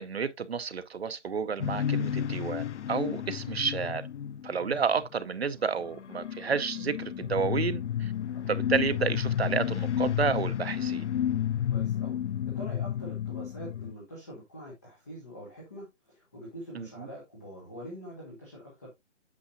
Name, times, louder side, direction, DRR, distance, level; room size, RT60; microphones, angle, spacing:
voice 1, 0.0-4.0 4.4-8.1 8.5-11.1 16.7-16.9, right 6 dB, 55° right, 0.7 m, -30 dB
sound 1, 1.6-5.1 5.8-13.9, left 10 dB, 70° left, 0.5 m, -31 dB
voice 2, 11.7-12.2 12.5-18.9, equal, 15° left, 1.0 m, -44 dB
8.5 x 5.7 x 2.6 m
hypercardioid pair, 175°, 37 cm